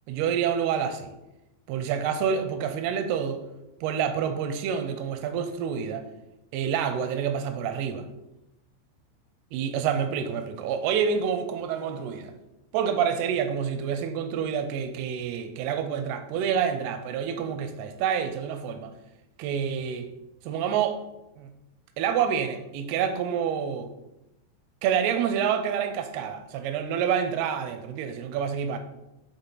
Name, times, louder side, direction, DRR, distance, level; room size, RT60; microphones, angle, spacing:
voice 1, 0.1-1.1 1.7-3.4 3.8-6.1 6.5-8.1 9.5-12.3 12.7-18.9 19.4-20.1 20.5-21.0 21.4-21.5 22.0-23.9 24.8-28.8, right 7 dB, 85° right, 8 dB, 2.4 m, -28 dB
8.9 x 4.4 x 3.9 m, 0.93 s
omnidirectional pair, 5.1 m